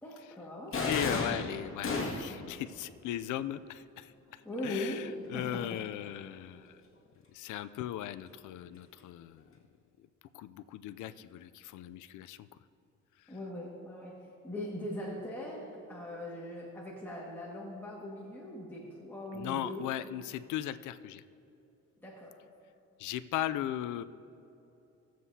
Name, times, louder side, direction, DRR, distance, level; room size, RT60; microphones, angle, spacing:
voice 1, 0.0-0.9 4.4-5.9 13.3-19.9 22.0-22.4, left 1 dB, 5° left, -5 dB, 1.8 m, -40 dB
sound 1, 0.7-2.5, left 3 dB, 45° left, 1.9 m, -32 dB
voice 2, 0.9-6.8 7.3-9.4 10.3-12.5 13.2-13.3 19.3-21.2 23.0-24.0, left 12 dB, 80° left, 12 dB, 0.5 m, -38 dB
19.0 x 7.6 x 2.8 m, 2.8 s
cardioid pair, 90°, 30 cm